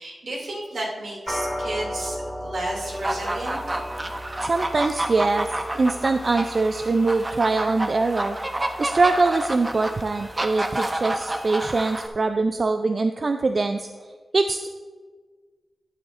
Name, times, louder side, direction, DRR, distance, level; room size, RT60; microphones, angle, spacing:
voice 1, 0.0-3.6, right 1 dB, 75° right, -3 dB, 2.6 m, -32 dB
sound 1, 1.3-10.8, equal, 5° left, 2.5 m, -37 dB
sound 2, 2.8-12.1, right 1 dB, 25° right, 0.8 m, -30 dB
voice 2, 4.4-5.5 5.7-8.4 8.8-13.9 14.3-14.7, right 3 dB, 50° right, 7 dB, 0.4 m, -23 dB
12.0 x 8.8 x 2.6 m, 1.5 s
cardioid pair, 65°, 0 cm